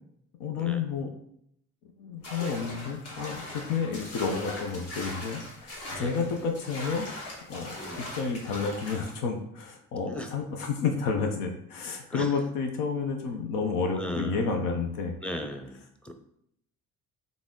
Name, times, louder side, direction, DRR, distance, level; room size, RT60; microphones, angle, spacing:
voice 1, 0.4-1.1 2.0-7.1 7.5-7.7 8.1-15.2, left 5 dB, 90° left, 3 dB, 0.8 m, -30 dB
sound 1, 2.2-9.1, left 1 dB, 50° left, 1.6 m, -40 dB
voice 2, 5.9-6.2 7.8-8.1 10.0-10.3 12.1-12.3 13.9-14.6 15.2-16.1, equal, 5° left, 5 dB, 0.6 m, -38 dB
4.0 x 3.5 x 3.7 m, 0.72 s
cardioid pair, 85°, 32 cm